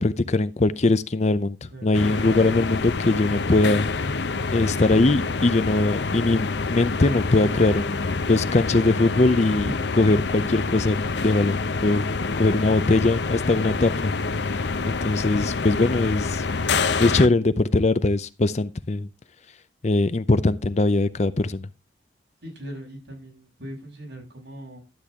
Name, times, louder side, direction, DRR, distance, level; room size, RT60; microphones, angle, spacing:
voice 1, 0.0-3.9 4.5-11.0 11.2-12.0 12.4-14.1 14.9-16.5 17.0-19.1 19.8-21.7, left 2 dB, 35° left, 0.6 m, -21 dB
sound 1, 1.9-17.3, left 4 dB, 70° left, 0.7 m, -27 dB
voice 2, 22.4-24.8, equal, 70° right, 6.1 m, -40 dB
12.5 x 8.3 x 3.6 m
head